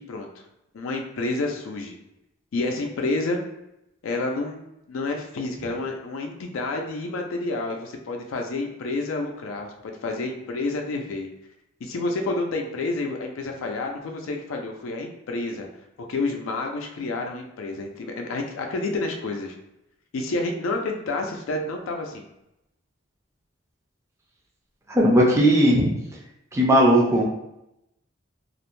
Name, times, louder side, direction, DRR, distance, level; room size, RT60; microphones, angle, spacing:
voice 1, 0.7-2.0 2.5-3.4 4.0-4.6 4.9-11.3 11.8-15.7 16.1-19.6 20.1-22.2, left 2 dB, 90° left, 3 dB, 0.4 m, -29 dB
voice 2, 24.9-25.9 26.5-27.2, equal, 15° right, -2 dB, 0.4 m, -17 dB
2.4 x 2.1 x 3.0 m, 0.88 s
head